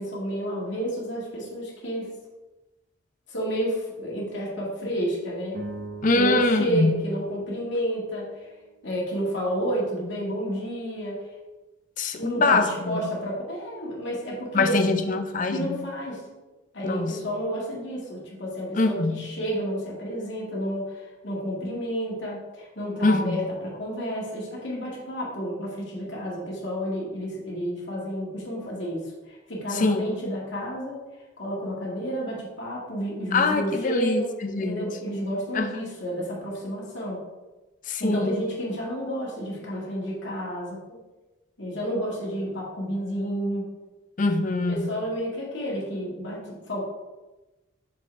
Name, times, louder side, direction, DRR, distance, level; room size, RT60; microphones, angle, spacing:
voice 1, 0.0-2.1 3.3-5.6 6.1-8.5 8.8-11.2 12.1-14.9 15.5-16.2 16.7-31.0 31.4-37.2 38.0-41.0 41.6-43.7 44.7-46.8, equal, 65° left, -4 dB, 2.1 m, -30 dB
sound 1, 5.5-10.0, right 2 dB, 45° right, 0.7 m, -43 dB
voice 2, 6.0-7.0 12.0-13.1 14.5-15.8 16.8-17.2 18.7-19.3 23.0-23.5 29.7-30.1 33.3-35.0 35.5-35.7 37.9-38.4 44.2-45.0, left 3 dB, 40° left, 7 dB, 0.5 m, -24 dB
6.6 x 4.6 x 3.5 m, 1.1 s
head